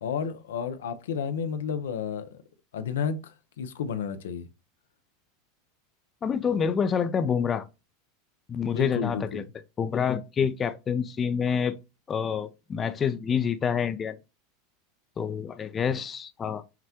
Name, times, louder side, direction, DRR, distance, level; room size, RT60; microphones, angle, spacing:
voice 1, 0.0-2.4 2.7-4.5 8.7-9.4, left 7 dB, 80° left, 0.5 m, -31 dB
voice 2, 6.2-7.7 8.5-9.4 9.8-11.8 12.1-14.2 15.2-16.6, left 7 dB, 30° left, 0.4 m, -27 dB
5.8 x 2.2 x 2.8 m
hypercardioid pair, 100°, 0 cm